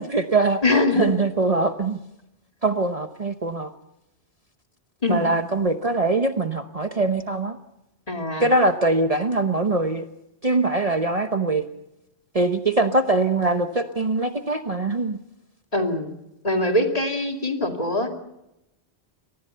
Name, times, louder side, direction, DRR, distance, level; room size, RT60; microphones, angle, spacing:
voice 1, 0.0-0.6 1.0-2.0 2.6-3.7 5.1-7.6 8.4-10.1 10.4-11.6 12.3-15.2, right 2 dB, 35° right, 7 dB, 1.0 m, -22 dB
voice 2, 0.6-1.1 5.0-5.4 8.1-8.5 15.7-16.1 16.4-18.1, left 2 dB, 35° left, 3 dB, 2.5 m, -22 dB
25.0 x 19.0 x 5.6 m, 0.89 s
omnidirectional pair, 1.1 m